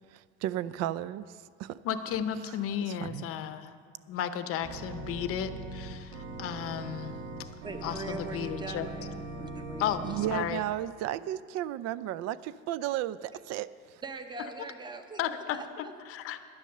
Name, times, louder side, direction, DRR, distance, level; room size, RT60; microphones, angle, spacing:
voice 1, 0.1-1.8 2.9-3.3 10.0-14.0, right 13 dB, 60° right, 17 dB, 0.5 m, -34 dB
voice 2, 1.8-3.7 4.1-7.5 7.8-8.9 9.8-10.0 10.3-10.6 15.2-16.4, left 9 dB, 50° left, 10 dB, 0.7 m, -34 dB
Organ, 4.6-10.4, right 2 dB, 85° right, 2.0 m, -40 dB
voice 3, 7.6-10.2 14.0-15.2 15.5-15.9, right 3 dB, 15° right, 7 dB, 0.8 m, -41 dB
11.0 x 9.5 x 6.6 m, 2.1 s
cardioid pair, 150°, 29 cm